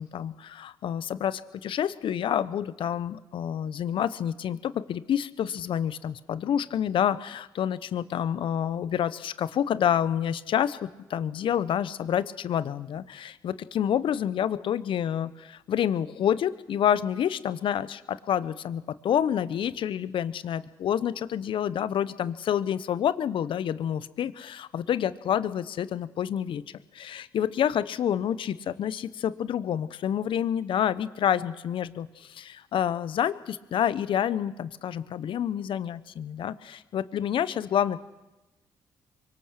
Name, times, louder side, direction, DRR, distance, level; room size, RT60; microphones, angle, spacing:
voice 1, 0.0-26.6 26.9-38.0, left 9 dB, 65° left, 16 dB, 1.0 m, -28 dB
24.0 x 23.5 x 6.6 m, 1.0 s
hypercardioid pair, 50°, 10 cm